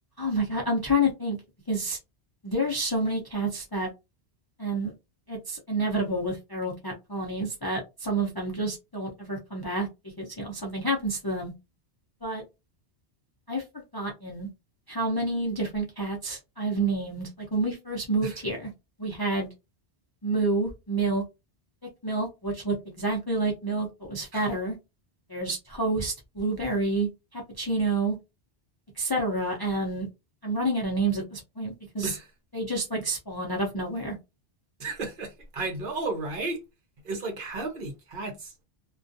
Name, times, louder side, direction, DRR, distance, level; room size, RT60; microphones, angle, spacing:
voice 1, 0.2-1.4 1.7-2.0 2.4-3.9 4.6-4.9 5.3-11.5 12.2-12.4 13.5-14.5 14.9-18.7 19.0-19.5 20.2-21.2 22.0-24.8 25.3-28.2 29.0-30.1 30.4-32.1 32.5-34.2, right 2 dB, 30° left, 0.4 m, -29 dB
voice 2, 34.8-36.6 37.0-38.5, right 3 dB, 55° right, 0.8 m, -33 dB
2.3 x 2.2 x 2.5 m
omnidirectional pair, 1.1 m